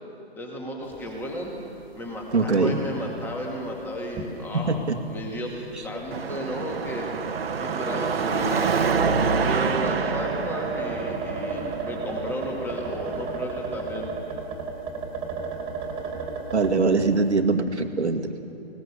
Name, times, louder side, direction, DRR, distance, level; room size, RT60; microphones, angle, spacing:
voice 1, 0.3-4.8 5.1-5.5 5.8-7.1 7.6-8.7 9.2-14.1, equal, 5° left, 0 dB, 2.4 m, -33 dB
sound 1, 0.9-1.4 1.6-1.7 2.2-2.6 3.2-3.3 4.2-4.3 4.7-4.8 6.0-6.1 7.2-16.8, right 5 dB, 15° right, 2.6 m, -34 dB
voice 2, 2.3-2.8 4.5-5.0 16.5-18.5, right 3 dB, 85° right, 5 dB, 2.1 m, -22 dB
Car passing by / Traffic noise roadway noise / Engine, 6.1-13.4, right 5 dB, 65° right, 1.6 m, -27 dB
20.0 x 19.5 x 7.0 m, 2.7 s
figure-of-eight pair, 145°, 33 cm